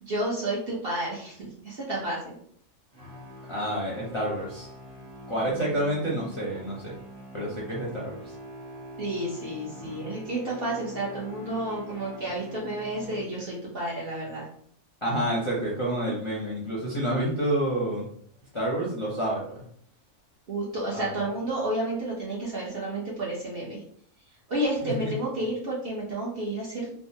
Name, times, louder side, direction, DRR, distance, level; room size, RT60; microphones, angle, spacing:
voice 1, 0.0-2.4 9.0-14.4 20.5-23.8 24.5-27.0, right 1 dB, 50° right, -4 dB, 0.8 m, -31 dB
sound 1, 2.9-13.7, right 1 dB, 85° right, 1.8 m, -44 dB
voice 2, 3.5-4.7 5.3-7.0 7.3-8.3 15.0-18.1 18.5-19.6 20.9-21.2 24.8-25.1, right 1 dB, 35° left, -6 dB, 0.4 m, -29 dB
3.4 x 2.0 x 2.7 m, 0.62 s
omnidirectional pair, 1.6 m